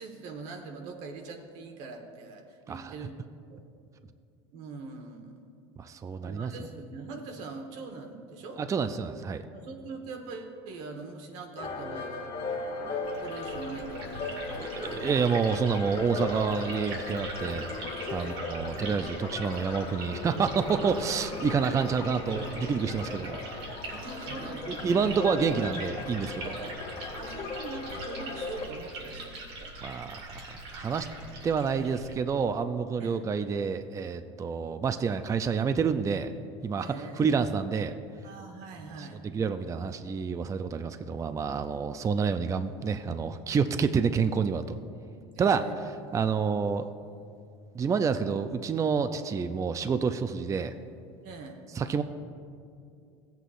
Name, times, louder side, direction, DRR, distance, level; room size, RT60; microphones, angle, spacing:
voice 1, 0.0-3.6 4.5-5.4 6.2-8.6 9.5-12.3 13.1-14.8 18.1-18.4 23.9-25.2 26.4-26.8 27.2-29.7 33.0-33.2 36.8-37.4 38.2-39.2 45.3-45.8 46.0-46.1 51.2-51.6, right 4 dB, 65° right, 4 dB, 1.4 m, -42 dB
voice 2, 5.8-6.5 8.7-9.4 14.2-14.3 14.6-17.7 18.1-23.4 24.7-26.5 29.8-31.1 31.4-36.3 36.6-36.9 37.2-37.9 39.0-44.8 45.4-45.6 46.1-46.9 47.7-50.7 51.8-52.0, right 5 dB, 25° right, 9 dB, 0.4 m, -28 dB
sound 1, 11.6-28.7, left 3 dB, 45° left, 1.7 m, -37 dB
Liquid, 13.0-32.1, right 2 dB, 85° right, 2.4 m, -42 dB
16.0 x 8.1 x 2.5 m, 2.4 s
supercardioid pair, 95°, 14 cm